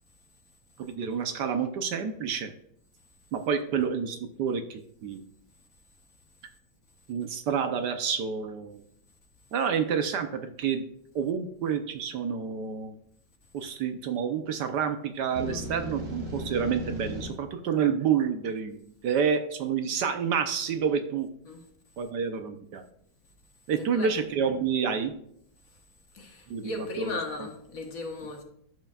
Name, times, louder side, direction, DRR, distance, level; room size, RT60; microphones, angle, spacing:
voice 1, 0.8-2.5 3.3-5.2 7.1-8.8 9.5-10.8 11.1-13.0 13.5-21.3 22.0-22.8 23.7-25.1 26.5-27.2, right 7 dB, 65° right, 1.3 m, -29 dB
sound 1, 15.4-17.3, equal, 45° right, 2.2 m, -36 dB
voice 2, 23.8-24.1 26.1-28.4, left 2 dB, 50° left, 1.5 m, -36 dB
12.5 x 5.6 x 2.4 m
omnidirectional pair, 2.1 m